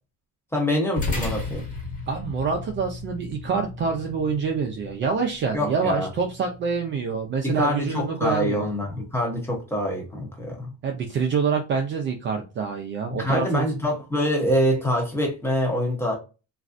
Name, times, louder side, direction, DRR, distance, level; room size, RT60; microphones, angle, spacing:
voice 1, 0.5-1.7 5.5-6.1 7.4-10.7 13.1-16.1, equal, 5° left, 0.8 m, -25 dB
sound 1, 1.0-9.6, left 2 dB, 20° left, 1.2 m, -36 dB
voice 2, 2.1-8.7 10.8-13.7, right 5 dB, 35° right, 0.4 m, -26 dB
3.1 x 2.4 x 2.5 m
cardioid pair, 150°, 36 cm